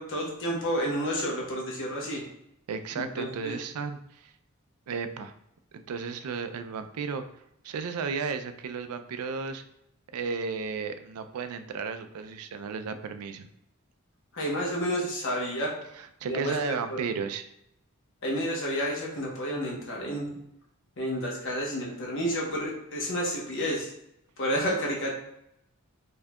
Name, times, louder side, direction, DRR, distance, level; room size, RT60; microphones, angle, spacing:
voice 1, 0.0-2.2 3.0-3.5 14.3-15.8 16.3-17.0 18.2-20.4 21.0-23.9 24.4-25.1, equal, 60° left, -2 dB, 1.0 m, -30 dB
voice 2, 2.7-4.3 4.9-5.3 5.7-7.2 7.6-9.6 10.1-13.5 16.0-17.5, right 5 dB, 80° right, 9 dB, 0.4 m, -34 dB
4.4 x 2.7 x 2.2 m, 0.80 s
head